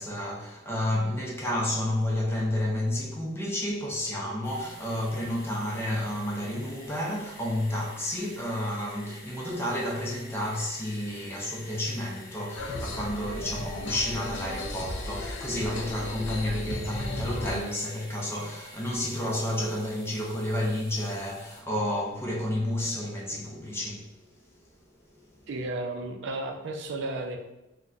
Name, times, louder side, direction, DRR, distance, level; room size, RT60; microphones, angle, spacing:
voice 1, 0.0-24.1 25.3-25.4, left 1 dB, 15° left, -3 dB, 0.5 m, -31 dB
sound 1, 4.4-21.6, left 1 dB, 50° left, 0.9 m, -49 dB
sound 2, 12.6-17.6, left 2 dB, 65° left, 0.4 m, -35 dB
voice 2, 25.5-27.4, right 2 dB, 65° right, 3 dB, 0.4 m, -33 dB
3.9 x 2.2 x 2.3 m, 0.93 s
head